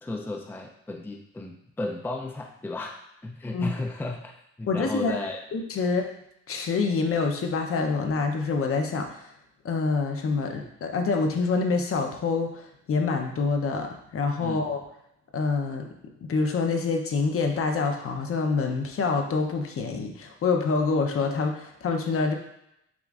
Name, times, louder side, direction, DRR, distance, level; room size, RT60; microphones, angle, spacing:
voice 1, 0.0-3.0 3.2-4.3 4.6-5.4 14.4-14.7, left 2 dB, 5° left, 2 dB, 0.4 m, -34 dB
voice 2, 4.7-5.1 5.5-6.1 6.5-9.2 9.6-12.6 12.9-14.8 15.3-15.9 16.2-22.3, left 4 dB, 50° left, 3 dB, 0.7 m, -26 dB
7.2 x 2.5 x 2.4 m, 0.79 s
cardioid pair, 90°, 30 cm